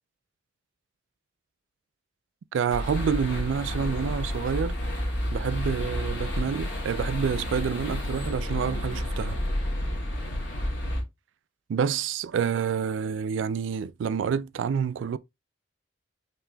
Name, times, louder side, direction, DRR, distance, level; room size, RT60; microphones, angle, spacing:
voice 1, 2.5-4.8 5.3-9.4 11.7-15.2, right 7 dB, 75° right, 0.3 m, -28 dB
sound 1, 2.7-11.0, left 1 dB, 70° left, 1.5 m, -30 dB
5.8 x 2.9 x 2.3 m
head